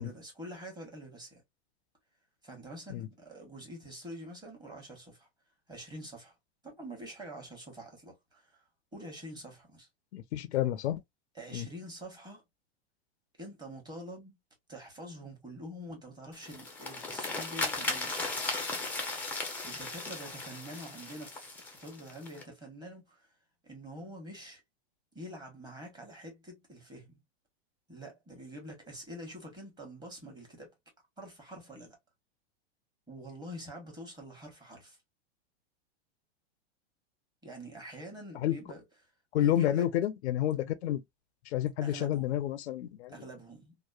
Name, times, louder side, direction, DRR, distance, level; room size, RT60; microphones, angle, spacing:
voice 1, 0.0-1.4 2.4-5.3 5.7-6.3 6.6-8.6 8.9-9.9 11.3-12.4 13.4-14.4 14.7-18.3 19.6-23.3 23.6-24.6 25.1-27.2 27.9-30.7 31.2-32.0 33.1-35.0 37.4-38.8 39.3-39.9 41.8-42.3 43.1-43.8, right 1 dB, 10° right, 1.1 m, -46 dB
voice 2, 10.1-11.0 11.5-11.7 38.3-38.6 39.3-41.0 41.5-43.1, left 12 dB, 80° left, 0.5 m, -30 dB
sound 1, 16.3-22.4, left 3 dB, 5° left, 0.5 m, -36 dB
2.8 x 2.0 x 2.3 m
hypercardioid pair, 130°, 33 cm